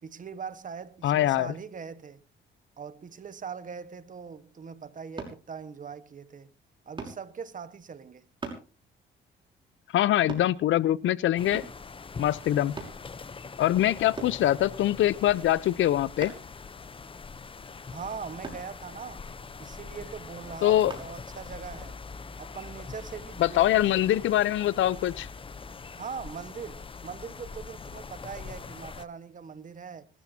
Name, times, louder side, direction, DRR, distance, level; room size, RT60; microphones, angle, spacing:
voice 1, 0.0-2.2 2.8-6.5 6.8-8.3 17.9-19.2 19.6-22.0 22.4-24.0 25.9-30.1, right 6 dB, 40° right, 1.4 m, -41 dB
voice 2, 1.0-1.5 9.9-11.6 12.2-12.7 13.6-16.3 20.6-20.9 23.4-25.3, left 13 dB, 75° left, 0.7 m, -23 dB
sound 1, 5.2-5.4 7.0-7.2 8.4-8.7 10.3-10.5 11.5-11.8 12.8-13.0 14.2-14.4 16.2-16.5 18.4-18.7 20.9-21.1 21.7-21.8, right 3 dB, 25° right, 5.9 m, -39 dB
sound 2, 11.4-29.0, left 4 dB, 25° left, 0.8 m, -43 dB
25.5 x 13.5 x 2.8 m
cardioid pair, 90°, 20 cm